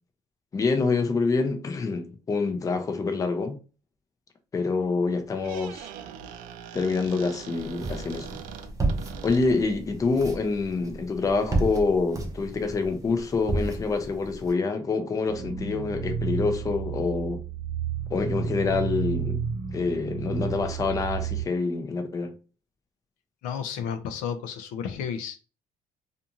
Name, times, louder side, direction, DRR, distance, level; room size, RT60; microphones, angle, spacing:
voice 1, 0.5-3.6 4.5-5.9 6.7-8.3 9.2-17.4 18.1-19.4 19.7-22.3, left 4 dB, 25° left, 0.5 m, -26 dB
Squeak, 5.2-9.8, right 8 dB, 80° right, 0.4 m, -42 dB
sound 1, 7.5-14.5, right 2 dB, 25° right, 0.6 m, -33 dB
sound 2, 15.3-21.4, right 7 dB, 60° right, 0.8 m, -31 dB
voice 2, 23.4-25.4, left 7 dB, 85° left, 0.4 m, -32 dB
2.5 x 2.5 x 2.7 m
cardioid pair, 115°, 14 cm